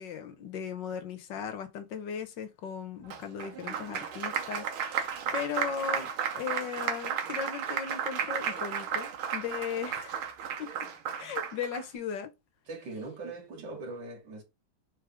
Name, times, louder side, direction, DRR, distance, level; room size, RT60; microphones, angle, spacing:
voice 1, 0.0-5.1 5.3-6.1 6.3-10.2 10.6-10.7 11.2-12.3, left 7 dB, 65° left, 1.5 m, -37 dB
Applause, 3.1-11.8, right 8 dB, 85° right, 1.9 m, -34 dB
voice 2, 12.7-14.4, right 2 dB, 60° right, 2.5 m, -40 dB
4.6 x 4.2 x 4.9 m
omnidirectional pair, 2.2 m